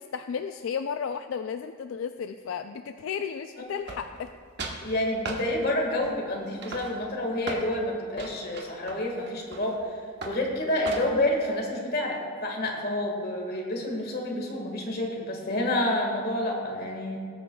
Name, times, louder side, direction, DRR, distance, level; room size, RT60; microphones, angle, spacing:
voice 1, 0.0-4.3, left 6 dB, 75° left, 8 dB, 0.3 m, -33 dB
sound 1, 3.9-4.3 4.6-4.8 5.2-5.4 6.0-6.3 6.6-7.7 8.2-9.8 10.2-10.4 10.8-11.3, right 3 dB, 55° right, 1.2 m, -37 dB
voice 2, 4.8-9.7 10.2-17.2, left 1 dB, 50° left, 0 dB, 1.7 m, -29 dB
19.5 x 8.6 x 2.3 m, 2.1 s
head